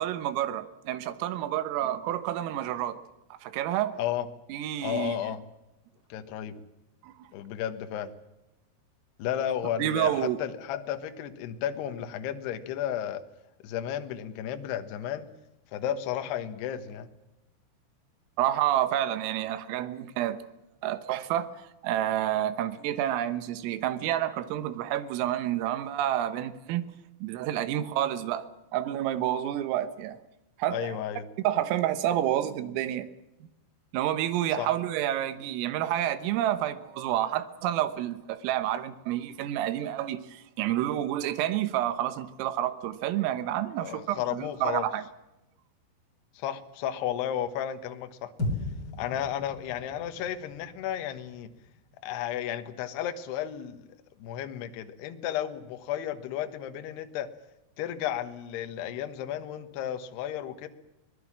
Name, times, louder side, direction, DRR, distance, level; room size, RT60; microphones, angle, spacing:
voice 1, 0.0-3.0 3.3-4.0 4.5-5.2 7.0-7.3 9.8-10.4 18.4-20.4 20.8-26.9 27.2-28.5 28.7-30.2 30.6-31.0 31.5-33.1 33.9-45.0, right 12 dB, 85° right, 12 dB, 3.8 m, -29 dB
voice 2, 4.8-5.4 6.1-6.6 7.3-8.2 9.2-13.2 13.6-15.3 15.7-17.1 30.7-31.3 34.6-34.7 43.8-44.9 46.3-48.3 49.0-51.5 52.0-53.9 54.2-57.3 57.8-60.7, left 10 dB, 70° left, 8 dB, 2.9 m, -33 dB
sound 1, 48.4-52.7, left 2 dB, 20° left, 4.2 m, -37 dB
23.5 x 19.0 x 7.4 m, 0.98 s
omnidirectional pair, 5.8 m